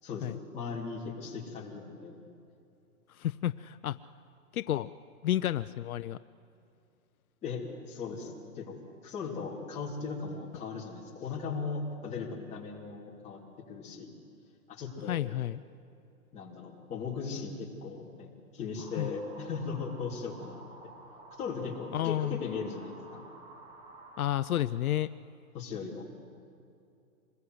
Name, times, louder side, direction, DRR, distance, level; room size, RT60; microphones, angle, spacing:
voice 1, 0.5-2.2 7.4-8.7 9.0-13.4 13.7-14.1 14.7-15.3 16.3-20.6 21.4-23.2 25.5-26.0, left 5 dB, 15° left, -4 dB, 3.1 m, -38 dB
voice 2, 3.1-4.0 4.5-4.9 5.2-6.2 15.1-15.6 19.0-19.1 21.9-22.4 24.2-25.1, left 12 dB, 75° left, 14 dB, 0.7 m, -31 dB
sound 1, 18.8-24.7, right 2 dB, 10° right, 1.2 m, -51 dB
26.5 x 21.0 x 8.0 m, 2.6 s
hypercardioid pair, 165°, 44 cm